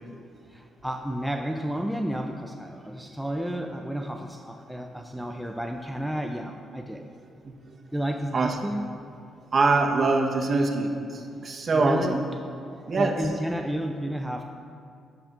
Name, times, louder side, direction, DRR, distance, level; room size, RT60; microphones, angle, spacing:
voice 1, 0.5-7.1 7.9-8.9 11.3-11.4 11.7-12.4 12.8-14.4, equal, 5° right, 4 dB, 0.4 m, -32 dB
voice 2, 9.5-12.2 12.9-13.1, right 3 dB, 40° right, 2 dB, 1.0 m, -23 dB
13.0 x 6.7 x 2.5 m, 2.4 s
cardioid pair, 90°, 0 cm